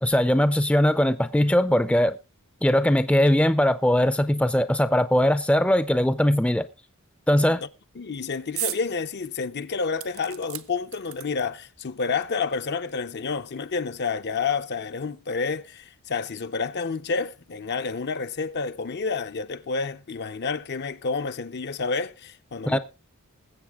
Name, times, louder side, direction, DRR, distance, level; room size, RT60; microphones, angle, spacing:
voice 1, 0.0-2.2 2.6-6.7 7.3-7.6 22.7-22.8, left 1 dB, 5° left, 0.5 m, -20 dB
voice 2, 8.0-22.8, left 4 dB, 50° left, 0.7 m, -29 dB
sound 1, 8.6-8.9 9.3-9.4 10.0-11.6 12.5-12.6 12.9-13.0, right 14 dB, 65° right, 0.8 m, -35 dB
20.5 x 8.0 x 3.6 m
head